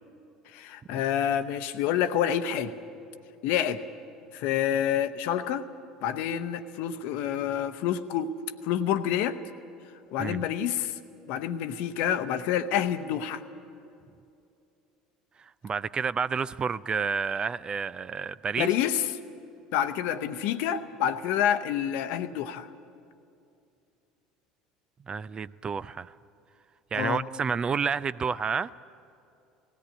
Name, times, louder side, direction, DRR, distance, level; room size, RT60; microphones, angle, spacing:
voice 1, 0.5-2.7 3.4-3.8 4.3-5.7 6.0-8.3 8.6-9.4 10.1-10.9 11.3-13.4 18.6-19.1 19.7-22.7 26.9-27.2, left 10 dB, 60° left, 11 dB, 0.9 m, -28 dB
voice 2, 15.4-18.7 25.1-26.1 26.9-28.7, right 5 dB, 30° right, 17 dB, 0.4 m, -30 dB
18.0 x 17.0 x 10.0 m, 2.6 s
figure-of-eight pair, 65°, 3 cm